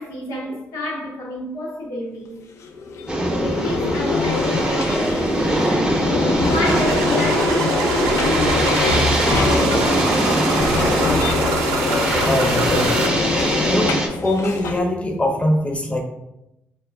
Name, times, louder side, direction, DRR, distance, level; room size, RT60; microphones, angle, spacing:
voice 1, 0.0-2.4 3.3-6.0 6.4-10.4, left 1 dB, 85° left, 0.9 m, -29 dB
sound 1, 2.6-14.8, left 3 dB, 60° left, 0.4 m, -24 dB
sound 2, 3.1-14.1, right 1 dB, 20° right, 0.7 m, -23 dB
sound 3, 6.6-13.1, right 3 dB, 90° right, 0.4 m, -24 dB
voice 2, 12.2-13.1 13.6-16.0, left 1 dB, 20° left, 0.6 m, -22 dB
3.8 x 2.1 x 2.2 m
supercardioid pair, 60°, 6 cm